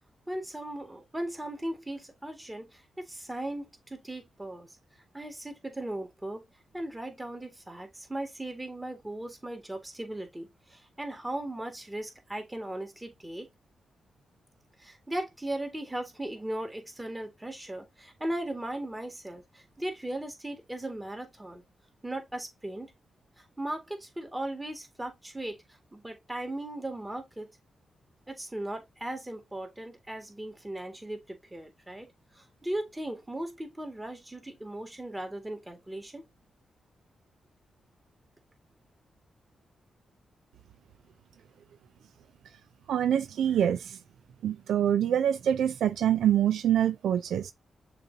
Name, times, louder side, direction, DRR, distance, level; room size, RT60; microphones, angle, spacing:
voice 1, 0.3-4.7 5.1-6.4 6.7-13.5 14.8-21.6 22.0-22.9 23.6-25.6 25.9-27.5 28.3-32.1 32.3-36.2, right 1 dB, 15° right, 1.8 m, -37 dB
voice 2, 42.9-44.0 44.4-47.5, right 10 dB, 85° right, 0.4 m, -25 dB
6.7 x 3.0 x 2.7 m
cardioid pair, 60°, 0 cm